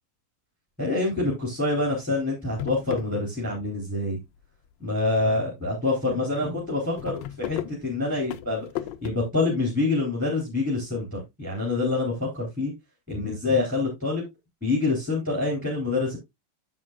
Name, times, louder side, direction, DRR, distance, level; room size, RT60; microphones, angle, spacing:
voice 1, 0.8-4.2 4.8-8.7 9.0-12.7 13.1-14.2 14.6-16.2, left 3 dB, 5° right, -1 dB, 3.3 m, -26 dB
sound 1, 1.2-1.6 2.0-2.1 2.4-3.7 4.0-4.7 5.2-5.4 5.6-5.7 6.0-6.1 6.4-9.1, left 12 dB, 70° left, 1.2 m, -36 dB
9.7 x 7.6 x 2.4 m, 0.19 s
omnidirectional pair, 2.3 m